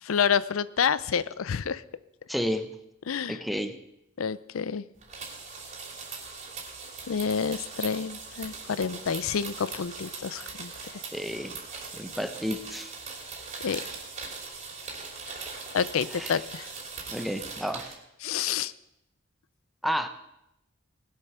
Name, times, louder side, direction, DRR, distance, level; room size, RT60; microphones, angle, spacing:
voice 1, 0.0-1.8 3.1-3.4 4.2-4.8 7.1-10.7 13.6-13.8 15.7-16.7 18.2-18.7, left 7 dB, 80° left, 17 dB, 0.5 m, -28 dB
voice 2, 2.3-2.7 3.3-3.8 11.1-11.6 11.9-12.9 16.1-16.4 17.1-17.9 19.8-20.1, equal, ahead, 8 dB, 0.8 m, -31 dB
sound 1, 5.0-17.9, right 4 dB, 35° right, 2.9 m, -40 dB
19.5 x 7.7 x 5.9 m, 0.83 s
head